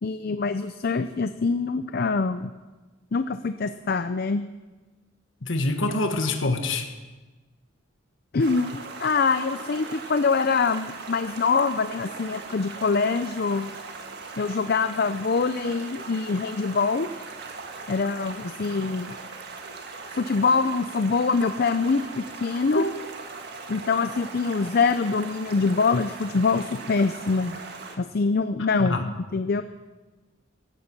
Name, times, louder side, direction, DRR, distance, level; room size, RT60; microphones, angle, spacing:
voice 1, 0.0-2.5 3.1-4.4 8.3-13.7 14.4-17.1 17.9-19.1 20.1-22.9 23.7-27.6 28.0-29.6, left 4 dB, 50° left, 11 dB, 0.5 m, -24 dB
voice 2, 5.4-6.9 22.7-23.0 28.8-29.1, left 2 dB, 65° left, 5 dB, 1.4 m, -25 dB
Stream, 8.4-28.0, right 4 dB, 50° right, 1.6 m, -39 dB
16.5 x 12.5 x 6.0 m, 1.2 s
head